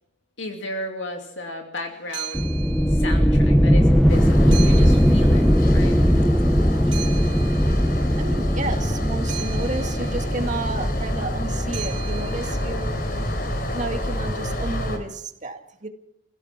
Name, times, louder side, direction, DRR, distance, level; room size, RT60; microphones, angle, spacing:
voice 1, 0.4-2.5 2.9-5.5 5.7-6.3, left 1 dB, 75° left, 2 dB, 2.7 m, -34 dB
sound 1, 1.9-3.6 3.9-6.2 6.6-13.1, right 13 dB, 75° right, 2.8 m, -40 dB
sound 2, 2.3-13.8, equal, ahead, 0.8 m, -20 dB
sound 3, 4.1-15.0, equal, 50° left, 4.3 m, -28 dB
voice 2, 8.2-12.9 13.7-15.9, right 2 dB, 40° right, 5 dB, 2.2 m, -31 dB
28.0 x 16.5 x 6.0 m, 0.73 s
head